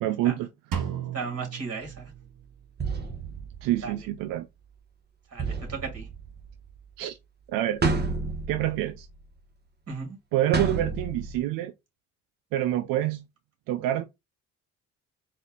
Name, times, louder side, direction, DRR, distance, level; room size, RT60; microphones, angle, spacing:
voice 1, 0.0-0.5 3.6-4.5 7.0-7.2 7.5-7.8 8.5-9.1 10.3-11.7 12.5-13.2 13.7-14.0, right 13 dB, 85° right, 0.5 m, -27 dB
Drum, 0.7-2.6, right 9 dB, 70° right, 1.4 m, -35 dB
voice 2, 1.1-2.0 3.8-3.9 5.3-6.1 9.9-10.2, right 4 dB, 45° right, 2.2 m, -35 dB
sound 1, 1.8-2.1 2.8-4.2 5.4-6.8 7.8-9.3 10.5-11.4, right 3 dB, 30° right, 1.2 m, -31 dB
4.1 x 2.4 x 3.7 m
supercardioid pair, 65°, 33 cm